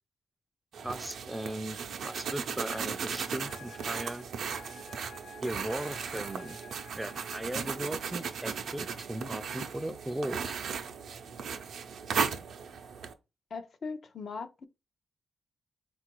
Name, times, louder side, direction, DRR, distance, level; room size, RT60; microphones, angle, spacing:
sound 1, 0.7-13.1, right 6 dB, 75° right, 0.5 m, -36 dB
voice 1, 0.8-1.8 2.0-4.3 5.4-6.6 6.9-10.6, right 1 dB, 10° right, 0.4 m, -37 dB
Wind instrument woodwind instrument, 2.7-7.4, left 2 dB, 80° left, 0.9 m, -51 dB
voice 2, 13.5-14.7, left 4 dB, 55° left, 0.5 m, -39 dB
3.7 x 2.4 x 4.5 m
cardioid pair, 85°, 0 cm